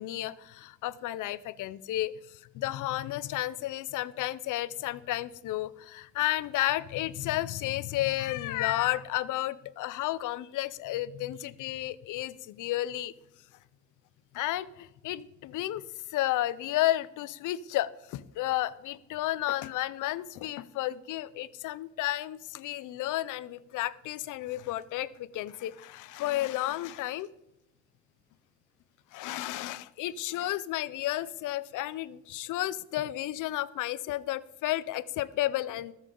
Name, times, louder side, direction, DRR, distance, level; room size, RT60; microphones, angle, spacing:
voice 1, 0.0-13.1 14.3-15.8 16.1-27.3 29.1-35.9, left 15 dB, 85° left, 17 dB, 0.6 m, -32 dB
20.0 x 7.3 x 3.8 m, 0.86 s
cardioid pair, 90°, 30 cm